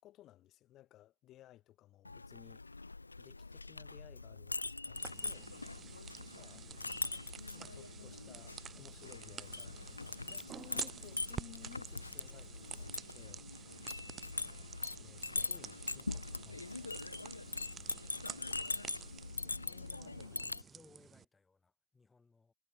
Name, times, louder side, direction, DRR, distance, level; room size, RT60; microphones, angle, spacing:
voice 1, 0.0-6.7 7.5-14.1 14.4-17.1, left 14 dB, 45° left, 3.6 m, -59 dB
Chink clink, 2.0-20.6, left 3 dB, 90° left, 0.3 m, -42 dB
sound 1, 4.9-21.2, right 7 dB, 30° right, 3.2 m, -50 dB
voice 2, 19.4-22.5, left 4 dB, 15° left, 5.2 m, -65 dB
figure-of-eight pair, 80°, 0 cm